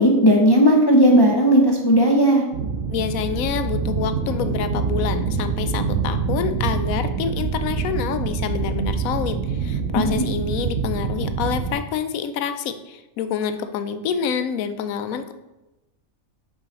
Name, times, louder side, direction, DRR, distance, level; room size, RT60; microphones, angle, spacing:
voice 1, 0.0-2.4 10.0-10.2, equal, 40° left, 0 dB, 0.3 m, -15 dB
sound 1, 2.5-11.8, right 5 dB, 75° right, 1.0 m, -25 dB
voice 2, 2.9-15.3, left 7 dB, 80° left, 10 dB, 1.0 m, -27 dB
5.6 x 4.7 x 4.1 m, 1.0 s
omnidirectional pair, 1.4 m